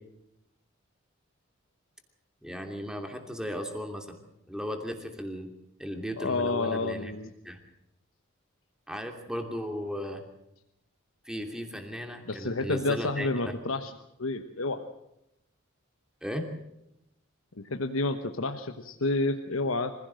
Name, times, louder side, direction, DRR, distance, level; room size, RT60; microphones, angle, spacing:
voice 1, 2.4-4.2 4.5-5.5 5.8-7.1 7.4-7.6 8.9-10.2 11.2-13.6 16.2-16.5, equal, 5° right, 4 dB, 2.8 m, -36 dB
voice 2, 6.2-7.3 12.3-13.9 14.2-14.9 17.6-19.9, left 2 dB, 85° left, 7 dB, 1.2 m, -30 dB
25.0 x 16.5 x 7.7 m, 0.83 s
head